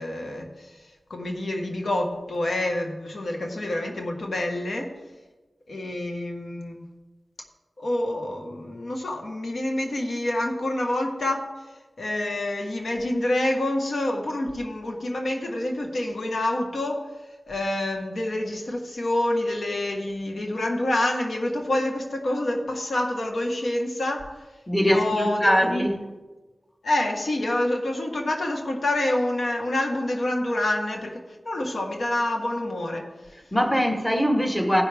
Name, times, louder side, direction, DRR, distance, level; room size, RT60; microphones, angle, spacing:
voice 1, 0.0-5.0 5.7-6.8 7.8-11.6 12.0-17.1 17.5-24.5 24.8-25.8 26.8-31.2 31.4-33.3, left 1 dB, 75° left, 2 dB, 1.4 m, -27 dB
voice 2, 24.7-26.1 33.5-34.8, equal, 10° left, 4 dB, 1.3 m, -22 dB
15.5 x 5.8 x 3.5 m, 1.2 s
wide cardioid pair, 65°, 0 cm